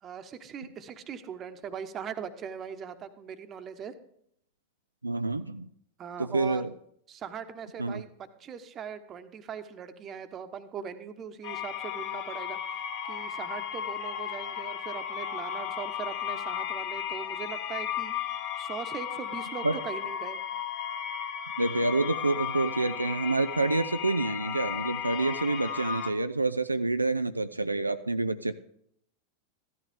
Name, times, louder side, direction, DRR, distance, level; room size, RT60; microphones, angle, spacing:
voice 1, 0.0-4.0 6.0-6.6 7.1-12.6 13.1-18.1 18.6-20.4, right 7 dB, 30° right, 10 dB, 1.1 m, -40 dB
voice 2, 5.0-5.7 6.2-6.7 7.8-8.0 19.6-19.8 21.6-28.5, right 2 dB, 85° right, 10 dB, 0.4 m, -28 dB
sound 1, 11.4-26.1, left 9 dB, 40° left, 1.4 m, -35 dB
15.0 x 12.5 x 3.6 m, 0.70 s
figure-of-eight pair, 90°, 0 cm